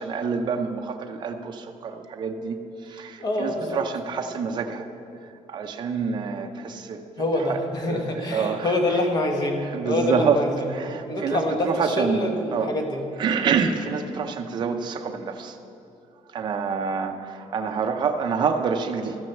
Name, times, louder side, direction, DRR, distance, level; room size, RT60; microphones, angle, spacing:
voice 1, 0.0-2.6 2.8-4.9 5.5-7.0 7.5-7.6 7.9-9.0 9.6-10.4 10.7-12.7 13.2-15.6 16.3-19.2, right 5 dB, 35° right, 4 dB, 0.6 m, -27 dB
voice 2, 3.2-3.8 7.2-10.7 11.0-13.0, left 1 dB, 30° left, 3 dB, 1.2 m, -26 dB
13.5 x 6.2 x 7.0 m, 2.7 s
cardioid pair, 180°, 13 cm